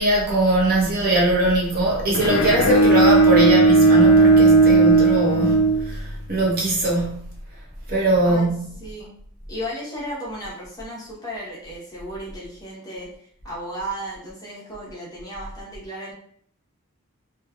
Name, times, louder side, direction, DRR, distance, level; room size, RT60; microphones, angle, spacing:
voice 1, 0.0-7.4 7.9-8.9, right 1 dB, 40° right, 0.7 m, -21 dB
Bowed string instrument, 2.1-6.4, right 3 dB, 65° left, 0.4 m, -16 dB
voice 2, 8.8-9.2 9.5-16.1, equal, 15° left, 0.7 m, -34 dB
3.0 x 2.2 x 2.2 m
head